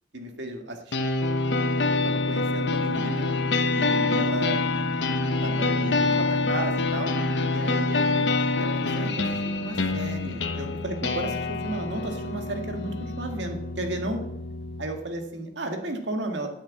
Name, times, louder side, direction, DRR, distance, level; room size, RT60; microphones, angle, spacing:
voice 1, 0.1-1.0 2.0-3.3 3.8-4.6 5.4-7.1 7.5-14.2 14.8-16.5, right 2 dB, 80° right, 4 dB, 1.9 m, -34 dB
sound 1, 0.9-14.9, left 3 dB, 80° left, 1.0 m, -26 dB
10.5 x 6.6 x 8.6 m, 0.84 s
head